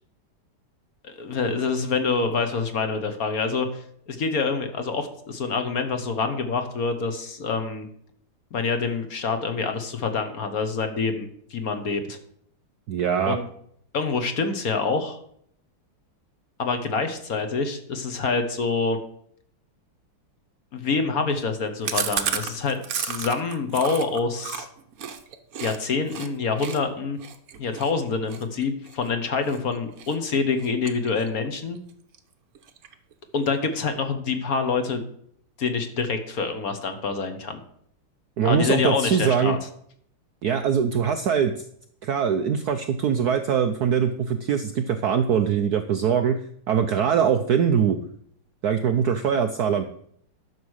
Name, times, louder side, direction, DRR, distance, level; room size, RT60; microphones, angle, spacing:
voice 1, 1.0-7.9 8.5-12.2 13.3-13.4 13.9-15.2 16.6-19.0 20.7-24.7 25.6-27.2 27.6-31.8 33.3-35.0 35.6-37.6 38.4-39.6, left 4 dB, 50° left, 8 dB, 1.4 m, -26 dB
voice 2, 12.9-13.4 38.4-39.6 40.4-41.6 42.0-46.4 46.7-48.0 48.6-49.8, right 7 dB, 80° right, 8 dB, 0.8 m, -22 dB
Chewing mastication, 21.8-25.8 26.1-26.3 26.6-29.6 30.0-30.3 30.6-31.5 31.8-31.9 32.1-32.2 32.5-33.1, right 7 dB, 55° right, 1.1 m, -32 dB
11.0 x 6.7 x 6.3 m, 0.67 s
omnidirectional pair, 2.4 m